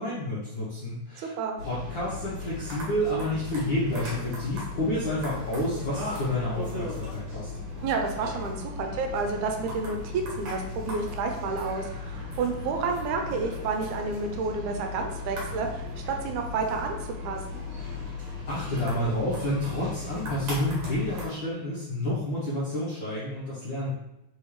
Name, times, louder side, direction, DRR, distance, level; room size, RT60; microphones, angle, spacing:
voice 1, 0.0-1.3 1.6-7.5 18.5-23.9, left 1 dB, 65° left, -9 dB, 1.2 m, -29 dB
voice 2, 1.2-1.6 7.8-17.0 17.2-17.6, right 4 dB, 85° right, 3 dB, 2.0 m, -30 dB
sound 1, 1.6-21.3, left 3 dB, 60° right, 2.2 m, -37 dB
4.7 x 3.5 x 3.1 m, 0.88 s
omnidirectional pair, 3.4 m